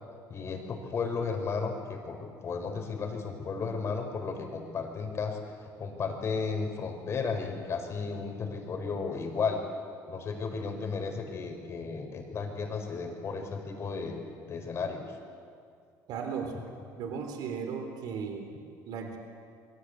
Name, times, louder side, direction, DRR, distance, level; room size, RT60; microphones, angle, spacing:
voice 1, 0.3-5.4 5.8-9.6 10.1-15.1, left 5 dB, 35° left, 4 dB, 4.6 m, -34 dB
voice 2, 16.1-16.5 16.9-18.5 18.9-19.2, right 6 dB, 65° right, 4 dB, 3.9 m, -36 dB
28.5 x 23.0 x 8.2 m, 2.3 s
cardioid pair, 135°, 8 cm